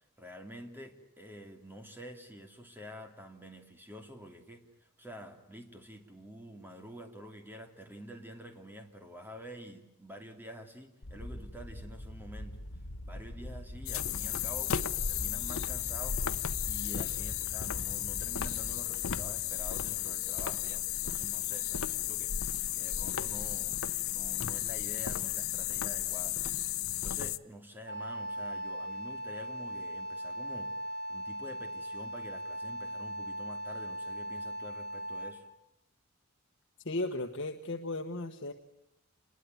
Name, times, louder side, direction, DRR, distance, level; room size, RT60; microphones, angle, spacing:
voice 1, 0.2-12.6 13.0-14.8 15.1-16.2 16.7-22.3 22.7-26.4 27.0-30.7 31.1-35.4, equal, 10° right, 5 dB, 2.8 m, -48 dB
sound 1, 11.0-18.8, left 1 dB, 90° left, 1.5 m, -43 dB
sound 2, 13.9-27.4, left 11 dB, 70° left, 0.9 m, -34 dB
Wind instrument woodwind instrument, 27.9-35.5, equal, 50° right, 5.0 m, -39 dB
voice 2, 36.8-38.5, left 2 dB, 55° left, 6 dB, 1.4 m, -35 dB
28.0 x 21.5 x 9.5 m, 0.86 s
head